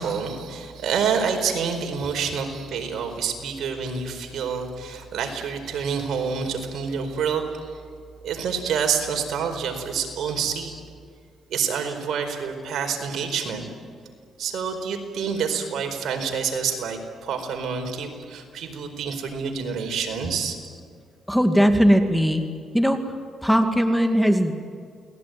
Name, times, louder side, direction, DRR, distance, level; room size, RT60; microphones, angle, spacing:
voice 1, 0.0-7.8 8.2-10.7 11.5-13.7 14.4-20.6, right 6 dB, 70° right, 5 dB, 4.5 m, -27 dB
voice 2, 21.3-22.5 22.7-23.0 23.4-24.5, equal, ahead, 6 dB, 2.3 m, -19 dB
29.5 x 20.0 x 9.3 m, 2.2 s
cardioid pair, 90°, 0 cm